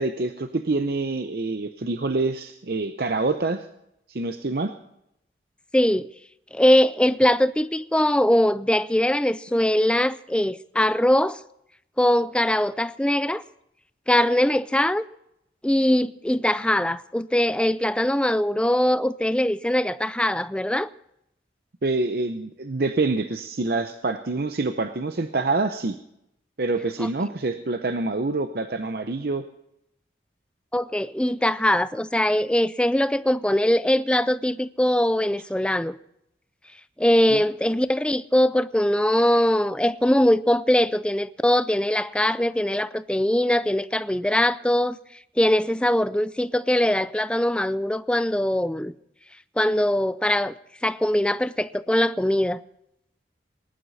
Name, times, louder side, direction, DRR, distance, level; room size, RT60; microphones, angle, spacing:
voice 1, 0.0-3.7 4.1-4.7 21.8-26.0 26.6-29.4 37.3-37.4, right 3 dB, 60° right, 0.7 m, -26 dB
voice 2, 5.7-6.1 6.5-11.4 12.0-13.4 14.1-15.0 15.6-20.9 27.0-27.1 30.7-36.0 37.0-45.0 45.4-48.9 49.6-50.5 50.8-52.6, left 1 dB, 5° left, 0.4 m, -22 dB
19.0 x 11.5 x 4.1 m
head